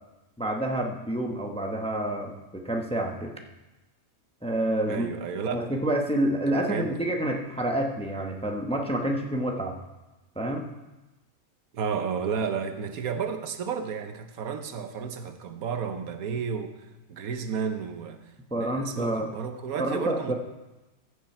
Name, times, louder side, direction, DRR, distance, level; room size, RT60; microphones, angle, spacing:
voice 1, 0.4-3.3 4.4-5.1 5.5-9.8 10.4-10.7 18.5-19.3 19.8-20.3, right 1 dB, 5° left, 2 dB, 0.8 m, -28 dB
voice 2, 4.9-5.6 6.5-7.0 11.7-16.7 17.1-20.3, right 6 dB, 80° right, 7 dB, 1.3 m, -32 dB
14.5 x 6.9 x 4.4 m, 1.1 s
omnidirectional pair, 1.5 m